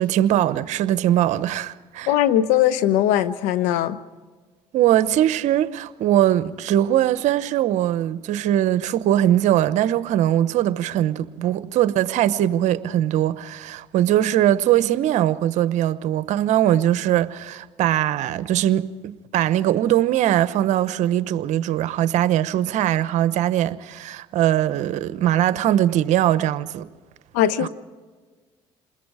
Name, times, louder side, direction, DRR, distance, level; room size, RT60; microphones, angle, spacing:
voice 1, 0.0-2.1 4.7-26.9 27.6-27.7, right 12 dB, 70° right, 0.9 m, -21 dB
voice 2, 2.1-4.0 27.3-27.7, left 11 dB, 85° left, 1.0 m, -20 dB
28.0 x 21.0 x 4.9 m
supercardioid pair, 75°, 13 cm